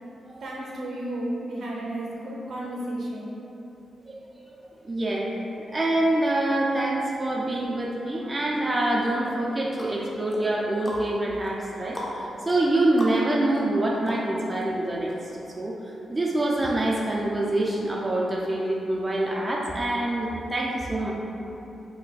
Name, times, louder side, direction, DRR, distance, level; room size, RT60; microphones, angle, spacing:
voice 1, 0.4-3.3, right 1 dB, 65° right, -4 dB, 0.7 m, -33 dB
voice 2, 4.6-5.3 5.6-21.1, right 1 dB, 20° right, -3 dB, 0.4 m, -26 dB
sound 1, 9.2-14.6 15.1-15.2, equal, 25° left, 0.7 m, -39 dB
3.2 x 2.1 x 3.9 m, 2.9 s
cardioid pair, 60°, 0 cm